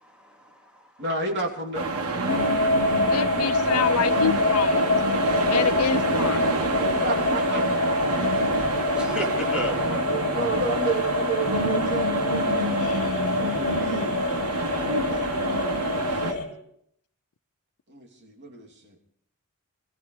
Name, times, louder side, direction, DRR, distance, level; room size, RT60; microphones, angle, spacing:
voice 1, 0.0-0.9 8.9-10.2, equal, 5° right, 2.8 m, -38 dB
voice 2, 1.0-1.9 6.7-7.6 10.0-12.8 13.1-14.5 15.1-16.4 17.9-18.9, right 3 dB, 55° right, 3.0 m, -32 dB
sound 1, 1.7-16.3, right 2 dB, 80° right, 1.4 m, -27 dB
sound 2, 2.3-16.5, left 3 dB, 50° left, 3.5 m, -26 dB
voice 3, 3.1-4.9 5.4-6.4 12.8-13.1, left 7 dB, 75° left, 0.5 m, -27 dB
24.5 x 15.5 x 3.3 m
head